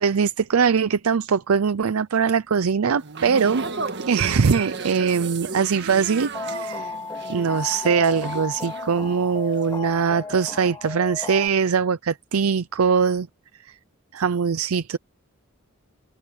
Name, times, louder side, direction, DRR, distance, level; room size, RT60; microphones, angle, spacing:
voice 1, 0.0-3.6 4.1-6.9 7.3-13.3 13.7-13.8 14.1-15.0, right 6 dB, 80° right, 0.5 m, -22 dB
sound 1, 3.0-9.2 9.5-9.8, right 4 dB, 55° right, 1.6 m, -34 dB
sound 2, 6.3-11.5, left 3 dB, 15° left, 3.2 m, -34 dB
head